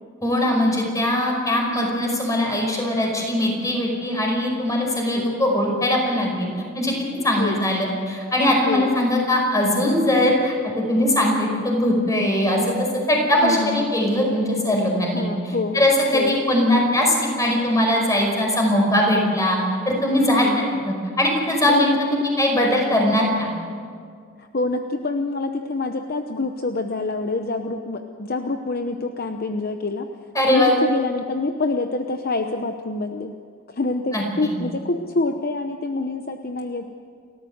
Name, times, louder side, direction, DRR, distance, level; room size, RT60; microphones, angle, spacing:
voice 1, 0.2-6.5 6.8-6.9 7.2-15.2 15.7-19.6 19.9-23.5 30.4-30.8 34.1-34.5, left 1 dB, 15° left, 0 dB, 5.2 m, -20 dB
voice 2, 13.4-13.9 15.1-15.8 16.1-16.4 20.4-20.6 21.7-22.2 24.4-30.1 30.5-33.3 33.7-36.9, left 3 dB, 45° left, 5 dB, 0.9 m, -26 dB
29.5 x 13.5 x 8.0 m, 2.1 s
head